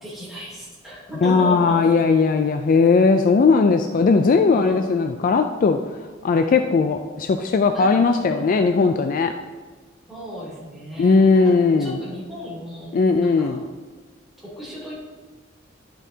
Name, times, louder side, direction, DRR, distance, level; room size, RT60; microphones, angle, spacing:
voice 1, 0.0-2.0 4.0-4.8 7.7-8.5 10.1-13.6 14.4-14.9, equal, ahead, -7 dB, 2.9 m, -35 dB
voice 2, 1.2-5.8 6.2-9.3 11.0-12.0 12.9-13.6, left 4 dB, 45° left, 7 dB, 0.3 m, -18 dB
11.5 x 7.2 x 2.8 m, 1.4 s
head